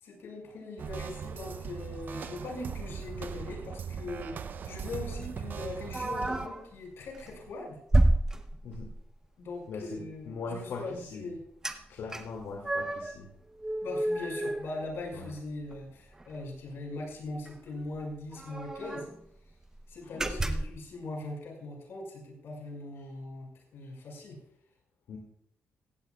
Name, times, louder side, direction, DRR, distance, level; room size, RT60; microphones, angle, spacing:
voice 1, 0.0-7.8 9.4-11.4 13.8-19.1 19.9-24.4, left 2 dB, 65° left, 0 dB, 5.8 m, -40 dB
sound 1, 0.8-6.5, right 6 dB, 45° right, 0.6 m, -39 dB
sound 2, 5.9-6.6 7.1-7.3 7.9-9.0 11.6-11.8 12.1-13.2 13.6-15.4 15.7-15.8 16.1-16.4 17.4-17.5 17.8-17.9 18.3-19.2 19.6-19.8 20.2-20.8, right 1 dB, 15° right, 0.8 m, -30 dB
voice 2, 9.7-11.3 11.9-13.3 15.1-15.3 20.0-20.3 23.0-23.1 25.1-25.2, left 4 dB, 85° left, 0 dB, 2.4 m, -41 dB
16.0 x 16.0 x 2.4 m, 0.72 s
wide cardioid pair, 170°, 4 cm